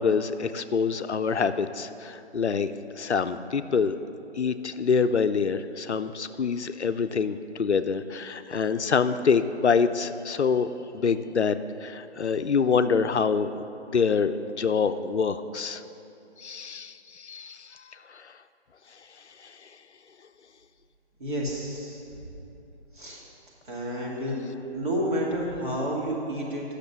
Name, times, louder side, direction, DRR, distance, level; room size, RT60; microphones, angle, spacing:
voice 1, 0.0-4.0 4.4-15.8 16.4-18.4 19.4-19.7, left 5 dB, 75° left, 11 dB, 0.5 m, -26 dB
voice 2, 21.2-22.0 22.9-23.2 23.6-24.4 24.7-26.6, equal, 45° right, -4 dB, 2.4 m, -30 dB
9.9 x 6.6 x 6.8 m, 3.0 s
figure-of-eight pair, 145°, 34 cm